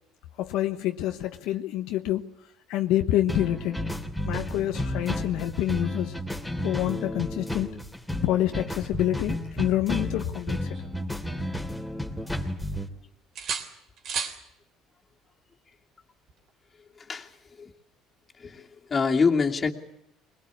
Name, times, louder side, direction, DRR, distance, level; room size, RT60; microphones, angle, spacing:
voice 1, 0.4-2.3 2.7-3.8 4.2-6.1 6.6-7.8 8.2-10.8, left 13 dB, 75° left, 1.2 m, -27 dB
sound 1, 3.3-12.9, left 1 dB, ahead, 2.8 m, -32 dB
sound 2, 10.2-11.8 12.1-12.9 13.4-14.4 16.3-16.5, right 6 dB, 55° right, 3.6 m, -37 dB
voice 2, 18.4-19.7, left 5 dB, 30° left, 2.7 m, -25 dB
21.5 x 21.5 x 8.5 m
supercardioid pair, 100°, 0 cm